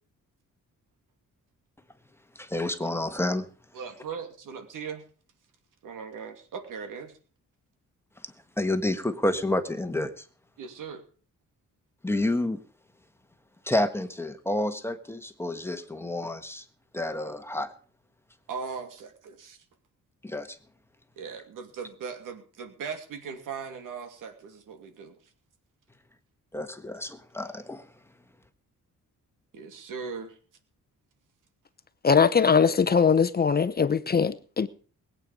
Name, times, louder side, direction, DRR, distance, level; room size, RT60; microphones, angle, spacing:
voice 1, 2.3-3.5 8.6-10.2 12.0-12.6 13.6-16.6 16.9-17.7 20.2-20.6 26.5-27.9, left 1 dB, 10° left, 1.4 m, -29 dB
voice 2, 3.7-5.0 5.8-7.1 10.6-11.0 18.5-19.6 21.2-25.1 29.5-30.4, right 6 dB, 80° right, 2.7 m, -39 dB
voice 3, 32.0-34.7, left 6 dB, 30° left, 0.8 m, -21 dB
21.0 x 8.7 x 5.3 m
cardioid pair, 125°, 32 cm